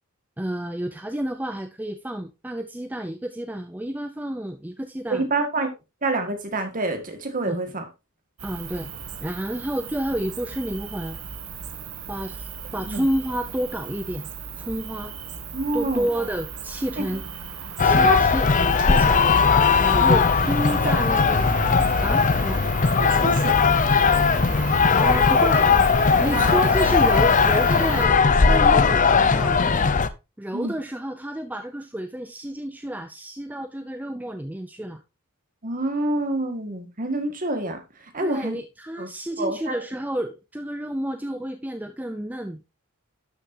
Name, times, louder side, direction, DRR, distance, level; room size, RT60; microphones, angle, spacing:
voice 1, 0.4-5.2 7.5-7.6 8.4-8.9 9.2-11.2 12.1-14.3 14.6-15.1 15.7-17.2 17.8-18.5 18.8-19.3 19.8-21.5 22.0-22.6 25.0-25.7 26.2-29.6 30.4-35.0 38.2-42.6, right 1 dB, 10° right, 7 dB, 0.5 m, -30 dB
voice 2, 5.1-5.7 6.0-7.8 12.9-13.0 15.5-16.1 17.0-17.1 17.8-18.2 19.8-20.2 20.8-21.0 23.0-23.7 26.1-26.5 30.5-30.7 35.6-37.8 38.1-38.6 39.0-39.1 39.4-39.7, right 2 dB, 40° right, 5 dB, 1.8 m, -27 dB
Cricket, 8.4-28.1, right 4 dB, 85° right, 1.1 m, -35 dB
sound 1, 17.8-30.1, left 5 dB, 35° left, 0.6 m, -18 dB
12.0 x 6.7 x 2.8 m, 0.26 s
head